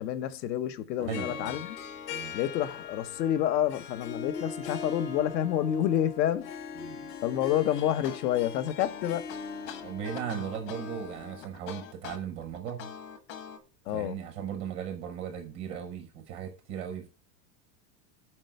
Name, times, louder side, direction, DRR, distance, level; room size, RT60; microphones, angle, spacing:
voice 1, 0.0-1.8 2.3-6.5 7.2-9.3 13.8-14.2, left 11 dB, 85° left, 1.1 m, -29 dB
Harp, 1.0-11.3, left 6 dB, 70° left, 2.0 m, -41 dB
voice 2, 1.0-1.6 2.1-2.3 6.8-7.2 9.8-12.9 13.9-17.1, right 8 dB, 15° right, 0.4 m, -37 dB
sound 1, 7.8-13.6, left 8 dB, 50° left, 1.5 m, -43 dB
10.0 x 4.5 x 6.5 m
supercardioid pair, 180°, 49 cm